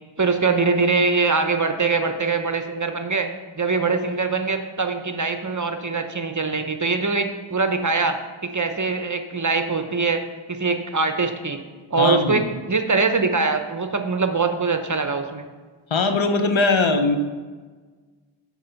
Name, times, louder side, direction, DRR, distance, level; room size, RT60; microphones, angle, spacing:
voice 1, 0.2-10.2 10.5-11.6 11.9-15.5, right 4 dB, 35° right, 7 dB, 0.8 m, -23 dB
voice 2, 12.0-12.5 15.9-17.2, left 3 dB, 65° left, 7 dB, 0.9 m, -20 dB
9.2 x 4.6 x 6.9 m, 1.4 s
wide cardioid pair, 50°, 49 cm